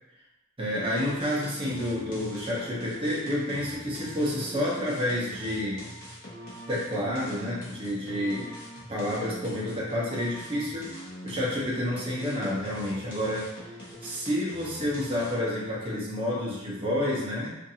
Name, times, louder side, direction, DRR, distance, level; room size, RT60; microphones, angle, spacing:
voice 1, 0.6-5.8 6.7-8.5 8.9-10.9 11.2-13.5 14.0-17.5, left 1 dB, 30° right, -6 dB, 0.7 m, -29 dB
sound 1, 0.7-15.5, equal, 50° left, 0.9 m, -44 dB
2.6 x 2.5 x 2.8 m, 0.93 s
head